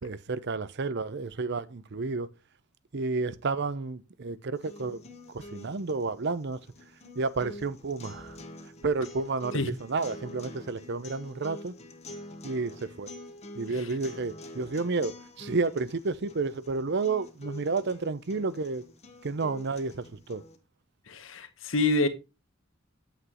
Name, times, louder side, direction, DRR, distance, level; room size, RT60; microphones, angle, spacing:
voice 1, 0.0-2.3 2.9-6.6 7.1-8.4 8.8-11.7 12.4-13.1 13.6-18.8 19.2-20.4, right 3 dB, 60° right, 0.7 m, -31 dB
sound 1, 4.5-20.6, left 1 dB, 35° left, 1.2 m, -46 dB
voice 2, 21.1-22.1, left 2 dB, 70° left, 1.2 m, -26 dB
8.4 x 8.1 x 3.0 m
head